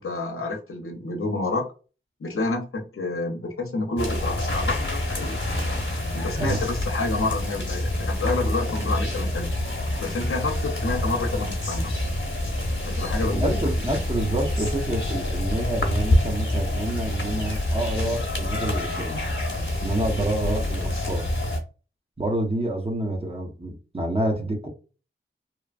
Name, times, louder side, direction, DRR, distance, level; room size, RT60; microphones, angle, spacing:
voice 1, 0.0-1.7 2.2-5.4 6.1-9.5 10.0-11.9 12.9-13.6, left 3 dB, 85° left, 0.7 m, -29 dB
sound 1, 4.0-21.6, left 1 dB, 60° left, 0.9 m, -27 dB
voice 2, 13.3-19.2 19.8-21.3 22.2-24.7, right 1 dB, 30° right, 0.9 m, -28 dB
3.0 x 2.1 x 2.4 m
wide cardioid pair, 45°, 21 cm